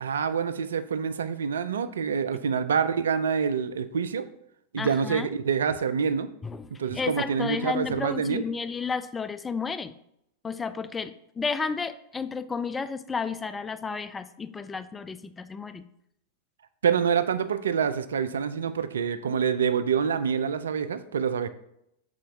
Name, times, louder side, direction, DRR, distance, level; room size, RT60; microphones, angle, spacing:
voice 1, 0.0-4.2 4.7-6.3 6.8-8.4 16.8-21.5, right 6 dB, 65° right, 11 dB, 0.4 m, -26 dB
voice 2, 4.8-5.3 6.4-9.9 10.4-15.8, left 5 dB, 15° left, 11 dB, 0.3 m, -32 dB
6.2 x 4.3 x 3.6 m, 0.77 s
figure-of-eight pair, 90°, 0 cm